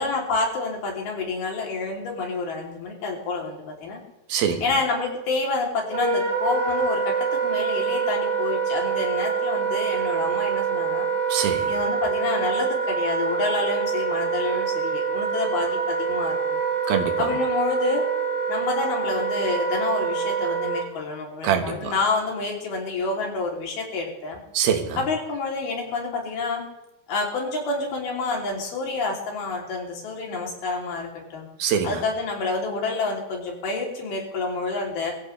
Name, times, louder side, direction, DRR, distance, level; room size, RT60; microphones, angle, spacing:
voice 1, 0.0-4.0 4.6-11.1 11.7-16.6 17.2-18.1 18.5-24.4 25.0-26.7 27.1-31.5 31.8-35.1, left 3 dB, 80° left, -1 dB, 5.0 m, -28 dB
voice 2, 4.3-4.7 11.3-11.7 16.9-17.3 21.4-21.9 24.5-25.0 31.6-32.0, right 8 dB, 80° right, 5 dB, 3.3 m, -24 dB
Wind instrument woodwind instrument, 5.9-20.8, right 5 dB, 50° right, 4.6 m, -25 dB
23.0 x 14.5 x 3.3 m, 0.89 s
omnidirectional pair, 4.3 m